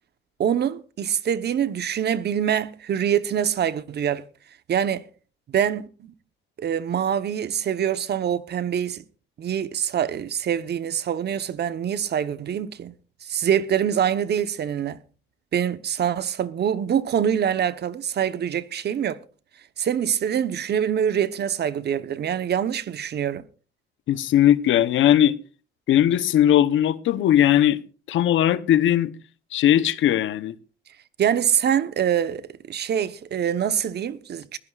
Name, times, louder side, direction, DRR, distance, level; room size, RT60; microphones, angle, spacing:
voice 1, 0.4-4.2 4.7-5.1 5.5-6.1 6.6-9.0 9.4-12.9 13.2-15.0 15.5-19.2 19.8-23.4 31.2-34.6, right 9 dB, 55° right, 1.0 m, -25 dB
voice 2, 24.1-25.3 25.9-27.8 28.1-29.1 29.5-30.6, left 11 dB, 80° left, 0.9 m, -19 dB
21.0 x 16.0 x 2.4 m
cardioid pair, 90°, 20 cm